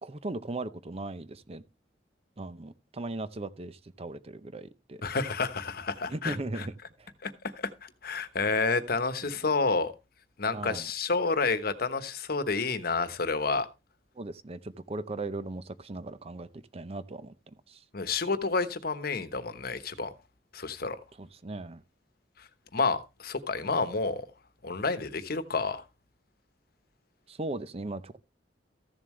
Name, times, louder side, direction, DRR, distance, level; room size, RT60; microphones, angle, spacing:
voice 1, 0.0-1.6 2.4-5.0 6.1-7.1 9.2-9.4 10.4-10.9 14.1-17.8 21.2-21.8 27.3-28.2, right 2 dB, 35° right, 0.7 m, -38 dB
voice 2, 5.0-6.7 7.2-9.9 10.4-13.7 17.9-20.1 20.5-21.0 22.7-24.3 24.6-25.8, left 4 dB, 60° left, 1.1 m, -30 dB
14.5 x 7.3 x 3.2 m
head